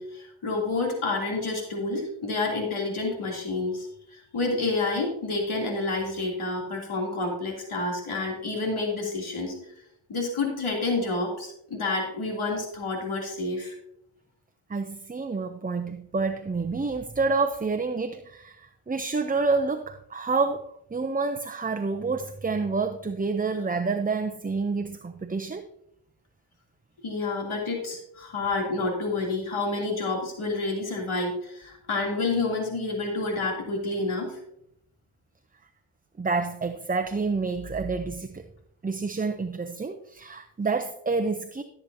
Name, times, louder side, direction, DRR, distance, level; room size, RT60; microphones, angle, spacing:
voice 1, 0.0-3.9 4.1-9.5 10.1-13.7 27.0-34.4, left 3 dB, 75° left, 2.9 m, -29 dB
voice 2, 14.7-25.7 36.2-38.4 38.8-41.6, right 4 dB, 20° right, 0.5 m, -28 dB
13.5 x 7.8 x 2.7 m
cardioid pair, 75°, 50 cm